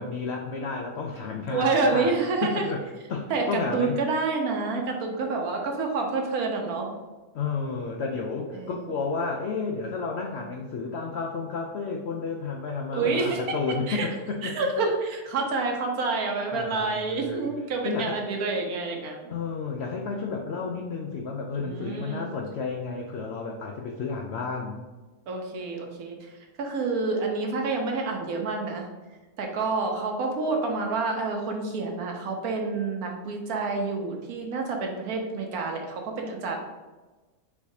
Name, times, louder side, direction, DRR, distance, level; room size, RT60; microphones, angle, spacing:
voice 1, 0.0-2.1 2.4-2.8 3.1-4.0 7.3-14.7 16.5-17.5 17.8-18.2 19.3-24.8, left 4 dB, 75° left, 1 dB, 0.6 m, -31 dB
voice 2, 1.5-2.7 3.3-6.9 8.5-8.8 12.9-13.4 13.9-14.1 14.4-19.3 21.6-22.3 25.3-26.3 26.6-28.9 29.4-36.6, right 3 dB, 70° right, 2 dB, 1.2 m, -28 dB
4.7 x 4.2 x 2.7 m, 1.2 s
omnidirectional pair, 1.7 m